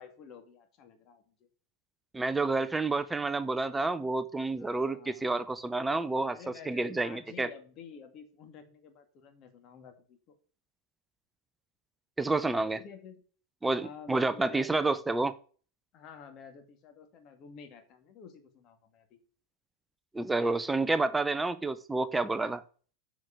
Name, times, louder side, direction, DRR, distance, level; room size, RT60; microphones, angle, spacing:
voice 1, 0.0-1.3 4.6-5.3 6.3-10.4 12.7-13.2 13.7-14.9 15.9-19.2, left 6 dB, 35° left, 2.2 m, -50 dB
voice 2, 2.1-6.4 6.7-7.5 12.2-12.8 13.6-15.3 20.1-22.6, right 3 dB, 10° right, 0.6 m, -29 dB
7.5 x 6.0 x 6.8 m
figure-of-eight pair, 90°, 0 cm